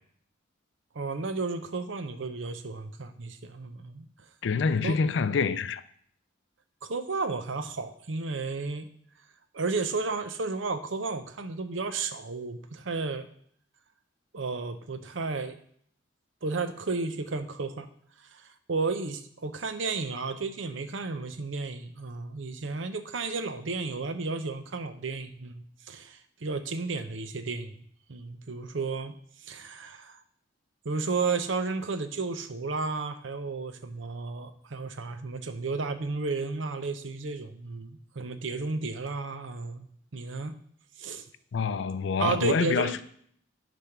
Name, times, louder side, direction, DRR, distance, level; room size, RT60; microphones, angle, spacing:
voice 1, 0.9-4.1 4.8-5.0 6.8-8.9 9.5-13.3 14.3-15.6 16.4-17.9 18.3-27.7 28.1-29.1 29.4-30.2 30.8-39.9 40.1-40.5 41.0-41.2 42.2-43.0, right 3 dB, 75° right, 0.7 m, -33 dB
voice 2, 4.4-5.8 41.5-43.0, left 5 dB, 65° left, 0.4 m, -26 dB
10.0 x 3.5 x 5.8 m
head